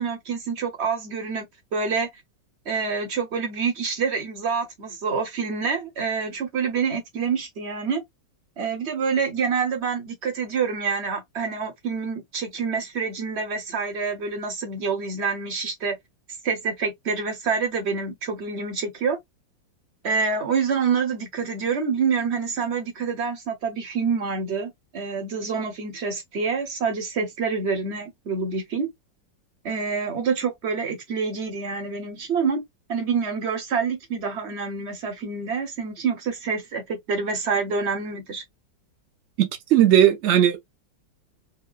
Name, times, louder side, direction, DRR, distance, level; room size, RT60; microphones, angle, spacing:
voice 1, 0.0-2.1 2.6-8.0 8.6-16.0 16.4-19.2 20.0-28.9 29.6-32.6 32.9-38.4, right 5 dB, 40° right, 1.2 m, -27 dB
voice 2, 39.4-40.6, right 11 dB, 80° right, 0.6 m, -17 dB
4.7 x 2.3 x 2.3 m
omnidirectional pair, 2.0 m